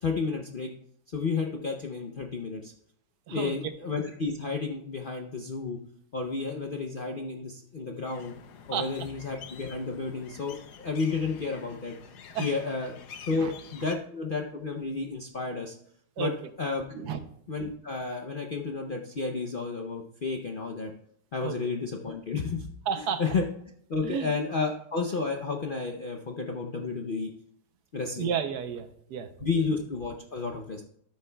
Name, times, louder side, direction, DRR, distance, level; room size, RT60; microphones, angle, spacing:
voice 1, 0.0-0.7 1.1-2.7 3.3-5.8 6.1-8.3 8.7-11.9 12.4-13.0 13.3-15.7 16.2-16.3 16.6-17.0 17.5-20.9 21.3-22.7 23.0-23.4 23.9-27.3 27.9-28.3 29.4-30.8, left 4 dB, 55° left, 2 dB, 0.6 m, -31 dB
sound 1, 8.0-13.9, left 7 dB, 75° left, 1.4 m, -47 dB
voice 2, 22.9-23.2 24.0-24.3 28.2-29.3, right 8 dB, 75° right, 10 dB, 1.3 m, -31 dB
13.0 x 10.0 x 2.3 m, 0.68 s
omnidirectional pair, 1.8 m